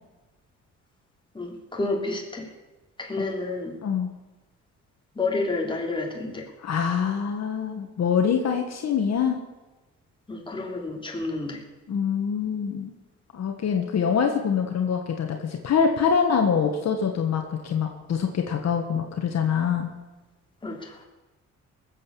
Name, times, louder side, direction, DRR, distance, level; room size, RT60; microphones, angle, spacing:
voice 1, 1.3-2.5 3.0-3.8 5.1-6.5 10.3-11.6 20.6-21.0, left 3 dB, 15° left, 0 dB, 3.4 m, -30 dB
voice 2, 6.6-9.4 11.9-12.9 13.3-19.9, left 6 dB, 60° left, 4 dB, 1.7 m, -25 dB
19.5 x 7.9 x 7.1 m, 1.1 s
cardioid pair, 90°, 30 cm